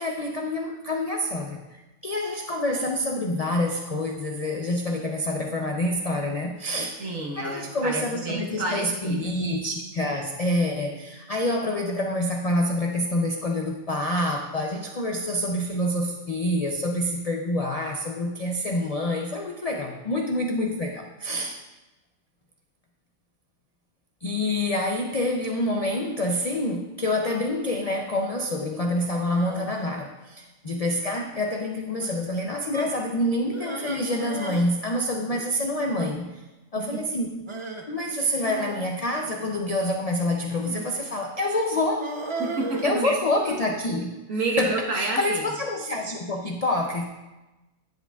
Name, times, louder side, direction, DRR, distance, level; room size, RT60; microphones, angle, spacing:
voice 1, 0.0-7.0 7.4-21.6 24.2-36.4 36.7-37.4 37.9-42.1 42.8-44.2 44.6-47.1, left 1 dB, 65° left, 1 dB, 0.3 m, -27 dB
voice 2, 7.0-9.3 36.8-37.0 42.4-43.1 44.3-45.4, right 3 dB, 70° right, -1 dB, 1.6 m, -29 dB
sound 1, 29.2-29.9 30.6-31.0 31.3-31.5 32.0-32.2 32.7-33.0 33.5-34.7 34.9-35.0 35.3-35.4 35.9-36.2 37.5-37.8 38.4-39.8 40.6-41.0 42.0-43.6, right 2 dB, 30° right, 0.6 m, -36 dB
10.5 x 8.3 x 2.3 m, 1.1 s
omnidirectional pair, 1.4 m